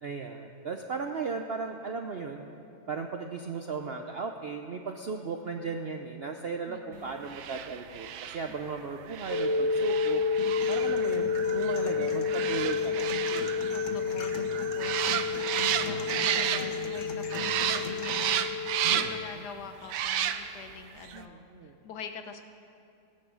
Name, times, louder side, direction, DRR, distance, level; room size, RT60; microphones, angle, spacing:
voice 1, 0.0-2.5 2.9-10.2 10.7-13.7 18.8-19.4 21.1-21.8, right 5 dB, 65° right, 4 dB, 0.6 m, -36 dB
voice 2, 6.7-7.3 13.7-18.6 18.9-22.4, left 6 dB, 75° left, 7 dB, 1.3 m, -45 dB
sound 1, 7.2-17.0 17.3-19.3 19.8-20.7 21.0-21.2, right 10 dB, 85° right, 1.3 m, -32 dB
sound 2, 9.3-19.2, left 5 dB, 90° left, 1.9 m, -30 dB
sound 3, 10.4-18.4, left 3 dB, 55° left, 1.2 m, -41 dB
16.5 x 10.5 x 6.3 m, 2.6 s
omnidirectional pair, 1.8 m